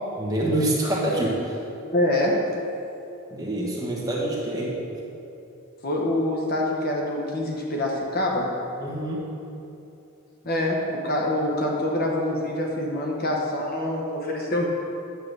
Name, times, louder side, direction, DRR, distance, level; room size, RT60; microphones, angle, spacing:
voice 1, 0.2-1.6 3.3-4.7 8.8-9.2, right 1 dB, 15° right, -5 dB, 1.3 m, -26 dB
voice 2, 1.9-2.4 5.8-8.5 10.5-14.6, left 1 dB, 45° left, -1 dB, 0.9 m, -25 dB
9.3 x 3.8 x 6.6 m, 2.8 s
head